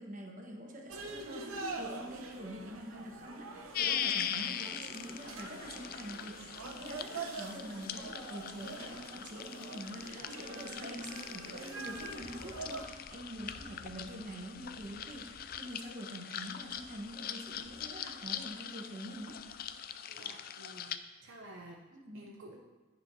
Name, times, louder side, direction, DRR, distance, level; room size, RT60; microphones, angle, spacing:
voice 1, 0.0-19.4 21.9-22.3, equal, 40° right, 0 dB, 1.3 m, -45 dB
sound 1, 0.9-12.9, right 3 dB, 90° right, 1.0 m, -45 dB
sound 2, 3.7-21.0, left 9 dB, 45° left, 0.3 m, -41 dB
Wind, 11.8-19.9, left 1 dB, 15° left, 0.9 m, -58 dB
voice 2, 20.1-21.8 22.1-22.6, right 1 dB, 65° right, 0 dB, 0.7 m, -52 dB
10.5 x 4.6 x 5.5 m, 1.2 s
head